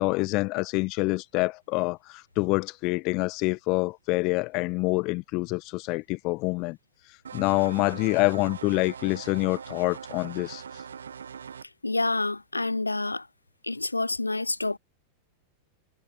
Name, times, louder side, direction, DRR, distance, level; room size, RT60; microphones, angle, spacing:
voice 1, 0.0-6.8 7.3-10.6, left 24 dB, 40° left, 1.2 m, -26 dB
sound 1, 7.2-11.6, right 7 dB, 70° right, 5.9 m, -41 dB
voice 2, 11.8-13.3 13.6-14.8, left 2 dB, 85° left, 0.7 m, -28 dB
figure-of-eight pair, 90°, 0 cm